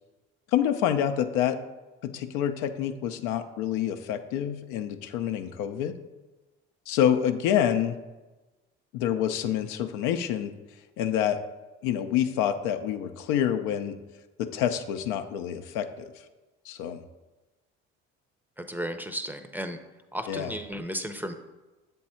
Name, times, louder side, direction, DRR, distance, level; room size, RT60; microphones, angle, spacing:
voice 1, 0.5-1.6 2.0-5.9 6.9-8.0 8.9-10.5 11.0-11.4 11.8-14.0 14.4-16.1 16.7-17.0 20.3-20.5, left 10 dB, 80° left, 8 dB, 0.5 m, -27 dB
voice 2, 18.6-19.8 20.1-21.3, equal, 5° right, 8 dB, 0.6 m, -34 dB
7.6 x 3.5 x 4.3 m, 1.1 s
hypercardioid pair, 65°, 31 cm